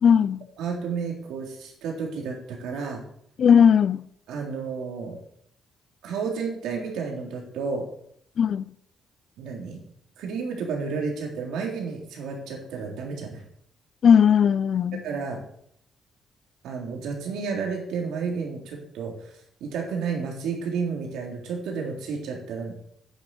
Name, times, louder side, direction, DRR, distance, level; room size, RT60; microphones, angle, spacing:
voice 1, 0.0-0.4 3.4-4.0 8.4-8.6 14.0-15.0, left 7 dB, 55° left, 0.5 m, -17 dB
voice 2, 0.6-3.0 4.3-5.2 6.0-7.8 9.4-9.8 10.2-13.4 15.0-15.4 16.6-22.8, right 5 dB, 85° right, 3.6 m, -31 dB
9.8 x 7.2 x 8.3 m
cardioid pair, 90°, 0 cm